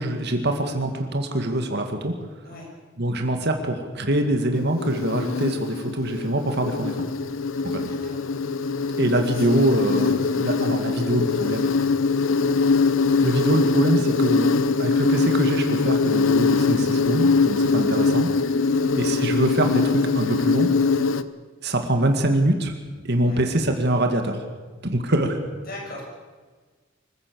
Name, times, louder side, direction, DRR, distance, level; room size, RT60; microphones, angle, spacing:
voice 1, 0.0-2.1 3.0-7.0 7.6-7.8 9.0-11.7 13.2-14.5 14.8-18.3 19.0-20.7 21.6-22.7 23.0-24.4 24.8-25.4, right 1 dB, 60° right, 5 dB, 2.2 m, -24 dB
Insect, 4.5-21.2, left 4 dB, 90° left, 0.9 m, -22 dB
voice 2, 7.7-8.3 9.3-9.7 18.6-18.9 23.2-23.4 25.7-26.0, left 1 dB, 50° left, -1 dB, 7.5 m, -40 dB
25.0 x 16.0 x 7.0 m, 1.4 s
head